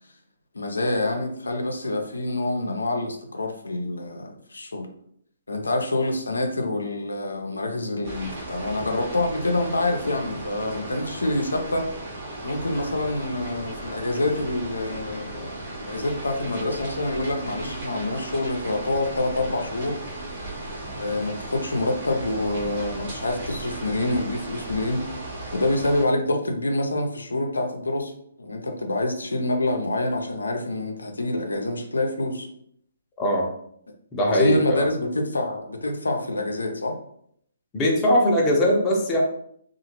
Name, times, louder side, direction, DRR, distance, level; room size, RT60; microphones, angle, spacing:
voice 1, 0.5-4.9 5.5-11.9 12.4-15.5 15.9-20.0 20.4-20.5 20.9-25.1 25.5-28.1 28.4-32.5 34.3-37.0, left 2 dB, 85° left, 3 dB, 0.5 m, -26 dB
sound 1, 8.0-26.1, right 2 dB, 45° right, 1.2 m, -36 dB
voice 2, 33.2-33.5 34.1-34.9 37.7-39.2, equal, 20° left, -2 dB, 0.7 m, -21 dB
2.8 x 2.4 x 2.9 m, 0.68 s
figure-of-eight pair, 140°, 0 cm